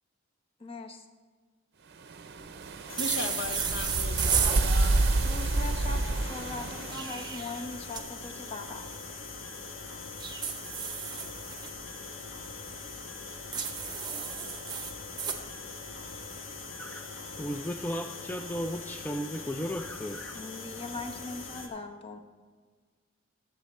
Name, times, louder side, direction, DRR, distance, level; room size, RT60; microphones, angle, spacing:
voice 1, 0.6-1.0 5.2-8.9 20.3-22.2, left 3 dB, 30° left, 4 dB, 0.9 m, -40 dB
sound 1, 2.1-7.4, right 2 dB, 55° right, 0.6 m, -29 dB
sound 2, 2.9-21.7, left 4 dB, 75° left, 1.4 m, -42 dB
voice 2, 3.0-5.1, left 4 dB, 60° left, 8 dB, 0.8 m, -37 dB
sound 3, 3.0-4.6 6.7-8.0 10.2-11.7 13.5-15.4, right 7 dB, 20° right, 0.8 m, -33 dB
voice 3, 17.4-20.4, equal, 10° left, 5 dB, 0.3 m, -35 dB
14.0 x 7.8 x 4.2 m, 1.5 s
head